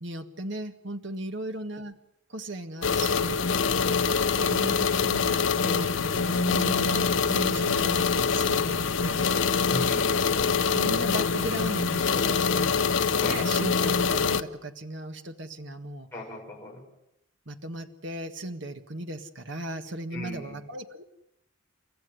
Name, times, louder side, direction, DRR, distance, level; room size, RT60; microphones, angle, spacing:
voice 1, 0.0-2.0 2.3-3.4 4.0-9.3 10.6-12.9 13.2-16.1 17.5-21.0, right 1 dB, 60° right, 7 dB, 1.7 m, -37 dB
sound 1, 2.8-14.4, left 5 dB, 65° left, 1.0 m, -25 dB
voice 2, 9.7-10.4 13.2-13.5 16.1-16.8 20.1-20.6, equal, 10° left, -2 dB, 7.3 m, -37 dB
30.0 x 14.5 x 9.7 m, 0.82 s
head